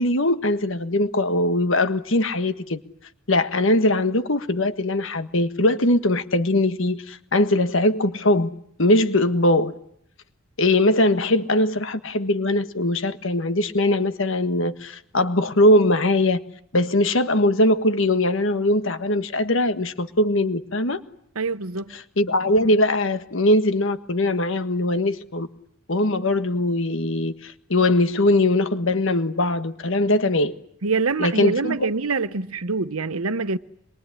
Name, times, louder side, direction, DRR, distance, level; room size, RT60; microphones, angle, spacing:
voice 1, 0.0-2.8 3.3-8.5 8.8-9.7 10.6-16.4 16.7-21.0 21.9-25.5 25.9-30.5 31.2-31.9, left 1 dB, 65° left, 1.6 m, -21 dB
voice 2, 21.3-22.0 30.8-33.6, right 4 dB, 90° right, 1.1 m, -25 dB
26.5 x 22.5 x 9.9 m
head